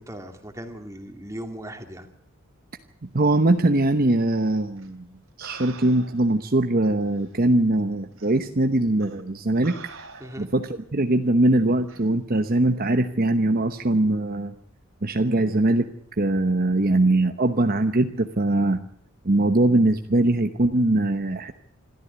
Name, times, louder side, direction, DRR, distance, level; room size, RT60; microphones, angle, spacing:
voice 1, 0.0-2.1 10.2-10.5, equal, 15° right, 5 dB, 2.5 m, -38 dB
voice 2, 3.1-5.1 5.4-9.7 10.4-14.5 15.0-15.9 16.2-18.8 19.2-21.5, right 2 dB, 45° right, 7 dB, 1.0 m, -21 dB
sound 1, 4.8-4.9 5.4-6.4 7.2-7.3 8.2-8.4 9.0-9.2 9.6-10.6 11.9-12.1, right 4 dB, 70° right, 2.5 m, -44 dB
26.0 x 13.5 x 8.2 m, 0.69 s
head